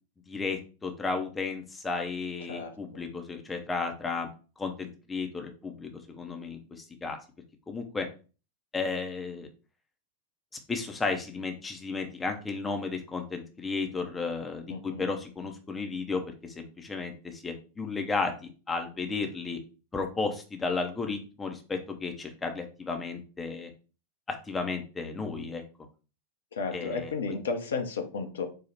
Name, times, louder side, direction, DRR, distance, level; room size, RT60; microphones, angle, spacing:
voice 1, 0.3-4.3 4.6-6.6 7.0-7.2 7.7-8.1 8.7-9.5 10.7-19.6 19.9-23.7 24.3-25.6 26.7-27.4, left 4 dB, 15° left, 4 dB, 0.7 m, -33 dB
voice 2, 14.7-15.1 26.5-28.5, left 4 dB, 65° left, 4 dB, 0.8 m, -33 dB
4.5 x 2.4 x 4.3 m, 0.34 s
figure-of-eight pair, 90°, 0 cm